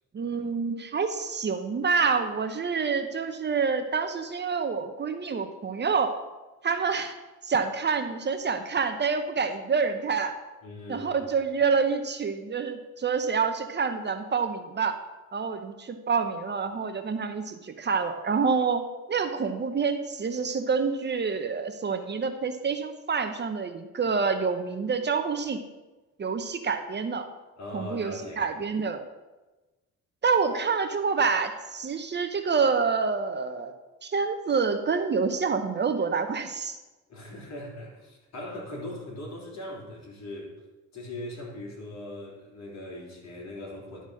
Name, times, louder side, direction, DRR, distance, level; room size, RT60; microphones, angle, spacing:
voice 1, 0.1-6.2 6.6-7.2 7.4-10.4 10.9-15.0 15.3-18.8 19.1-25.6 26.2-27.3 27.7-29.0 30.2-33.7 34.0-36.8, right 5 dB, 35° right, 8 dB, 0.7 m, -27 dB
voice 2, 10.6-11.2 27.6-28.5 37.1-40.5 40.9-44.0, left 1 dB, 60° left, -3 dB, 3.3 m, -40 dB
11.5 x 4.0 x 6.2 m, 1.1 s
cardioid pair, 90°, 30 cm